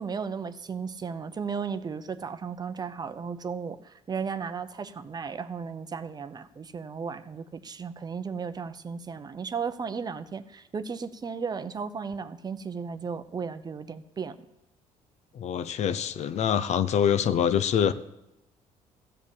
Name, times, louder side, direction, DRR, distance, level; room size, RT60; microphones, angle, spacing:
voice 1, 0.0-14.4, right 5 dB, 30° right, 11 dB, 0.7 m, -35 dB
voice 2, 15.3-17.9, left 8 dB, 55° left, 13 dB, 0.7 m, -25 dB
14.5 x 5.1 x 8.3 m, 0.90 s
cardioid pair, 105°, 13 cm